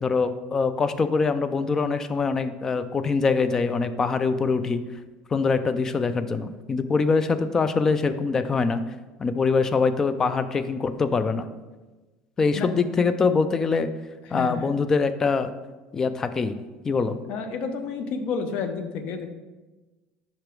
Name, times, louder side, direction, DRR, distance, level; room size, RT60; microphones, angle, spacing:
voice 1, 0.0-4.8 5.3-8.8 9.2-11.5 12.4-13.9 14.3-15.5 15.9-16.6 16.8-17.2, left 4 dB, 20° left, 12 dB, 0.3 m, -23 dB
voice 2, 14.3-14.7 17.3-19.3, left 5 dB, 50° left, 8 dB, 0.6 m, -30 dB
5.8 x 5.0 x 4.5 m, 1.2 s
cardioid pair, 160°, 3 cm